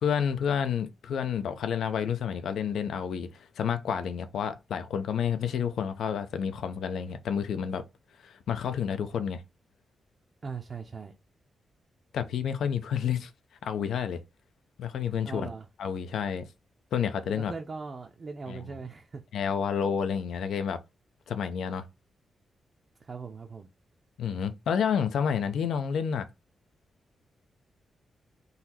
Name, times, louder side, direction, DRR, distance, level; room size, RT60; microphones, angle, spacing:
voice 1, 0.0-3.3 3.6-7.8 8.2-9.4 12.1-13.3 13.6-14.2 14.8-15.5 15.8-16.5 16.9-17.5 18.5-18.8 19.3-20.8 21.3-21.9 24.2-26.3, left 7 dB, 90° left, 0.6 m, -29 dB
voice 2, 10.4-11.1 15.2-15.6 17.4-19.2 23.0-23.7, right 4 dB, 35° right, 0.5 m, -39 dB
4.0 x 2.8 x 4.2 m
wide cardioid pair, 150°, 0 cm